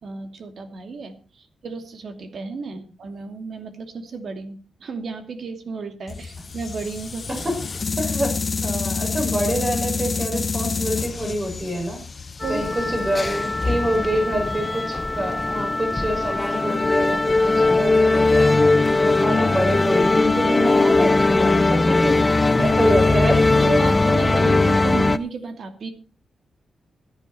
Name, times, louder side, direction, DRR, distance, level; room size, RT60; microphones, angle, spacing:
voice 1, 0.0-7.3 12.4-12.6 13.6-13.8 22.6-22.7 23.5-25.9, right 4 dB, 55° right, 7 dB, 2.5 m, -33 dB
sound 1, 6.1-14.2, left 4 dB, 35° left, 1.1 m, -29 dB
voice 2, 8.0-12.0 12.5-18.5 19.0-22.2 22.6-23.6, equal, 25° right, 2 dB, 6.5 m, -26 dB
sound 2, 12.4-25.2, left 2 dB, 15° left, 0.7 m, -19 dB
16.0 x 11.0 x 4.4 m, 0.33 s
wide cardioid pair, 135°, 0 cm